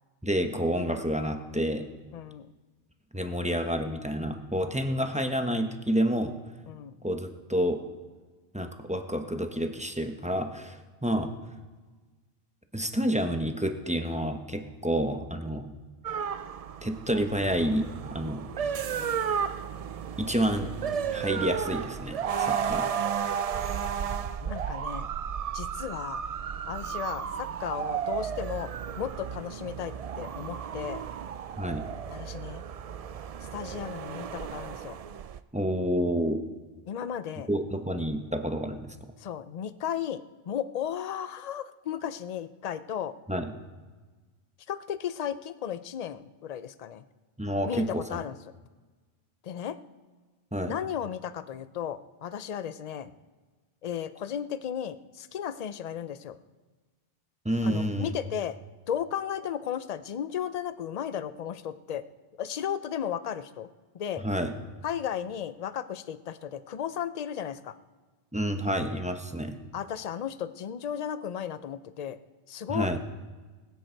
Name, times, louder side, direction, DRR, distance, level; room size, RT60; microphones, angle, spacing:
voice 1, 0.2-1.9 3.1-6.3 7.0-7.8 8.5-11.3 12.7-15.7 16.8-18.8 20.2-20.7 21.1-22.9 31.6-31.8 35.5-36.4 37.5-39.0 43.3-43.5 47.4-48.2 50.5-50.7 57.4-58.1 64.2-64.5 68.3-69.6 72.7-73.0, equal, 5° right, 5 dB, 0.8 m, -29 dB
voice 2, 2.1-2.5 6.7-6.9 11.1-11.4 18.9-19.2 24.2-25.1 25.5-26.2 26.7-28.7 29.0-31.0 32.1-32.6 33.5-35.0 36.9-37.5 39.2-40.2 40.5-43.1 44.7-47.0 47.6-48.3 49.4-49.8 50.6-53.1 53.8-56.4 57.6-58.6 58.9-62.0 62.4-63.7 63.9-64.2 64.8-67.7 69.7-72.2 72.5-73.0, left 9 dB, 50° left, 13 dB, 0.5 m, -35 dB
sound 1, 16.0-35.4, right 7 dB, 65° right, 0.3 m, -33 dB
20.0 x 9.3 x 4.6 m, 1.3 s
omnidirectional pair, 1.2 m